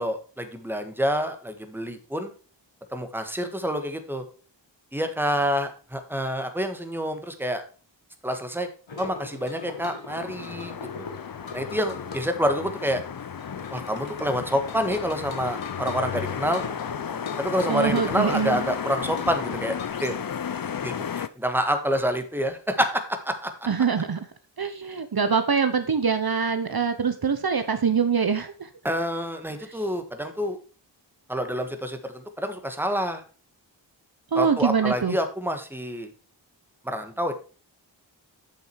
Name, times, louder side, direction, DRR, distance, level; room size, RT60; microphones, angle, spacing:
voice 1, 0.0-2.3 2.9-4.2 4.9-7.6 8.2-8.7 9.0-10.7 11.0-11.1 11.5-13.0 13.7-16.6 17.4-20.1 20.8-23.5 28.8-30.6 31.3-33.2 34.3-36.1 36.8-37.3, equal, 5° right, 7 dB, 1.5 m, -27 dB
sound 1, 8.9-19.9, left 4 dB, 80° left, 1.5 m, -39 dB
sound 2, 10.1-21.3, left 8 dB, 50° left, 0.6 m, -34 dB
voice 2, 17.7-18.6 23.7-24.2 24.6-28.7 29.7-29.8 34.3-35.2, right 6 dB, 55° right, 9 dB, 0.9 m, -24 dB
8.3 x 6.4 x 4.6 m, 0.38 s
wide cardioid pair, 55°, 45 cm